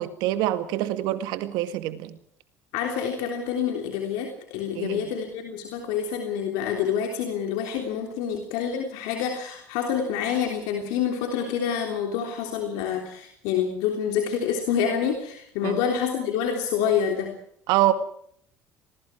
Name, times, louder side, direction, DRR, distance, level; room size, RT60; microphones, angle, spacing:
voice 1, 0.0-2.2 4.7-5.1 15.6-15.8 17.7-17.9, right 14 dB, 75° right, 1.9 m, -25 dB
voice 2, 2.7-17.3, left 8 dB, 80° left, 3.4 m, -27 dB
27.0 x 21.0 x 4.7 m
supercardioid pair, 75°, 7 cm